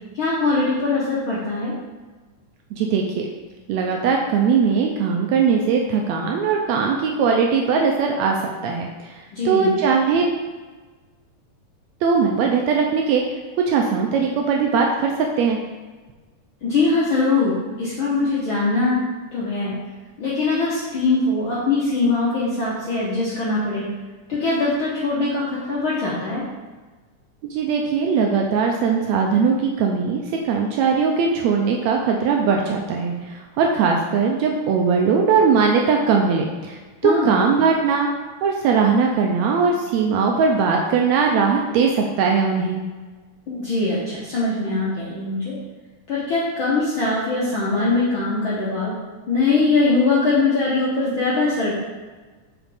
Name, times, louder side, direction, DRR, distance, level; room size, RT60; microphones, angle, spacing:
voice 1, 0.1-1.7 9.3-9.7 16.6-19.0 19.3-19.8 20.2-23.9 24.3-26.4 37.0-37.3 43.5-45.6 46.1-49.0 49.3-51.7, left 3 dB, 65° left, -8 dB, 1.3 m, -22 dB
voice 2, 2.8-3.3 3.7-10.3 12.0-15.6 27.4-38.1 38.4-42.8, right 5 dB, 80° right, 1 dB, 1.6 m, -20 dB
5.6 x 4.9 x 3.4 m, 1.3 s
omnidirectional pair, 3.5 m